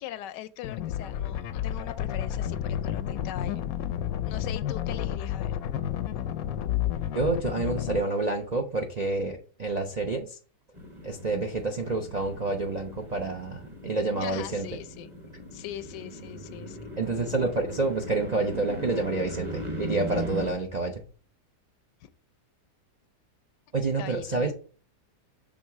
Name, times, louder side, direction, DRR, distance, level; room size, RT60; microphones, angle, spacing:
voice 1, 0.0-3.6 4.2-5.6 14.2-15.1 15.5-16.9 22.0-22.1 24.0-24.5, left 12 dB, 85° left, 1.2 m, -41 dB
sound 1, 0.6-8.0, left 10 dB, 70° left, 0.9 m, -31 dB
voice 2, 7.1-10.4 11.0-14.7 17.0-21.0 23.7-24.5, right 3 dB, 60° right, 0.4 m, -28 dB
sound 2, 10.7-20.5, equal, 20° right, 1.1 m, -39 dB
6.3 x 3.6 x 5.8 m
omnidirectional pair, 1.8 m